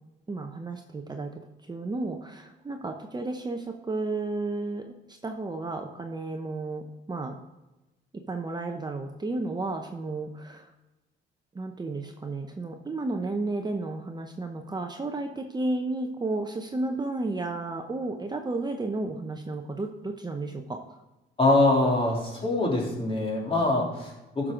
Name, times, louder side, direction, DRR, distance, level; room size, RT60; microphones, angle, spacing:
voice 1, 0.3-1.3 1.6-7.4 8.3-10.7 11.5-21.0, right 2 dB, 20° right, 4 dB, 0.8 m, -32 dB
voice 2, 21.4-24.5, left 2 dB, 30° left, -2 dB, 3.0 m, -24 dB
12.0 x 6.1 x 3.8 m, 1.0 s
cardioid pair, 90°, 20 cm